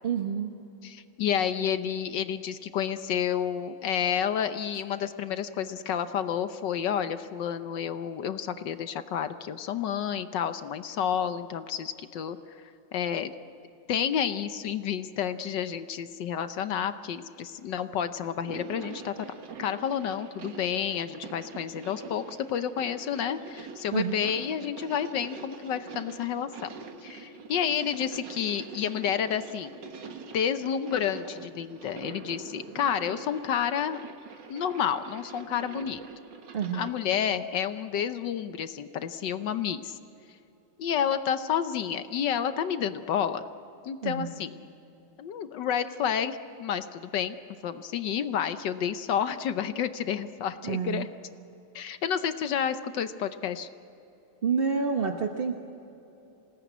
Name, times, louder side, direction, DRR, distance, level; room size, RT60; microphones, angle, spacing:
voice 1, 0.0-0.5 23.9-24.2 36.5-36.9 44.0-44.3 50.6-51.1 54.4-55.5, right 6 dB, 40° right, 4 dB, 0.9 m, -28 dB
voice 2, 0.8-12.4 12.9-13.3 13.9-19.1 19.6-26.7 27.0-29.8 30.3-34.0 34.5-36.0 36.7-40.0 40.8-43.4 43.8-44.5 45.2-47.4 47.6-51.1 51.7-53.7, left 8 dB, 65° left, 11 dB, 1.3 m, -30 dB
sound 1, 18.3-37.0, right 4 dB, 60° right, 2.1 m, -45 dB
27.0 x 18.5 x 9.3 m, 2.9 s
omnidirectional pair, 2.3 m